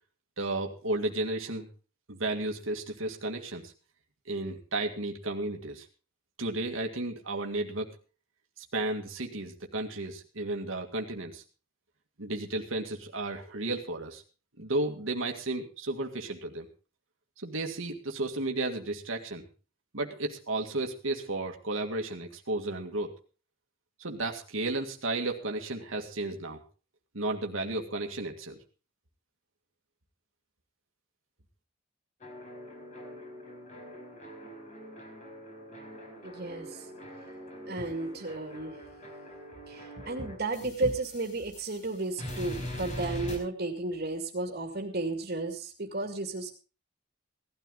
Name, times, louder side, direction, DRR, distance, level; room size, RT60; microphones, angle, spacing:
voice 1, 0.4-1.7 2.1-3.7 4.3-5.9 6.4-7.9 8.6-11.4 12.2-14.2 14.6-16.7 17.4-19.5 19.9-23.1 24.0-26.6 27.1-28.6, right 2 dB, 85° right, 3 dB, 2.0 m, -33 dB
sound 1, 32.2-41.9 42.2-43.4, equal, 35° left, 4.8 m, -43 dB
voice 2, 36.2-36.8 37.7-38.8 39.7-46.5, right 2 dB, 50° right, 3 dB, 2.2 m, -33 dB
17.5 x 12.5 x 3.9 m, 0.35 s
head